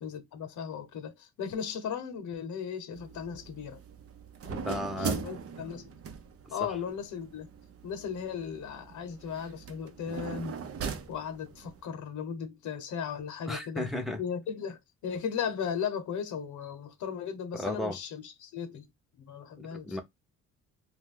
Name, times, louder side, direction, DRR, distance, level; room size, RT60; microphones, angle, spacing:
voice 1, 0.0-3.8 5.0-5.9 6.5-7.5 7.8-10.6 11.1-13.9 14.2-18.9 19.2-20.0, left 7 dB, 75° left, 0.9 m, -36 dB
sound 1, 2.9-11.8, right 6 dB, 50° right, 0.7 m, -40 dB
voice 2, 4.5-5.3 6.6-6.7 13.5-14.2 17.5-18.0 19.6-20.0, left 1 dB, ahead, 0.7 m, -35 dB
2.6 x 2.3 x 3.5 m
cardioid pair, 90°, 30 cm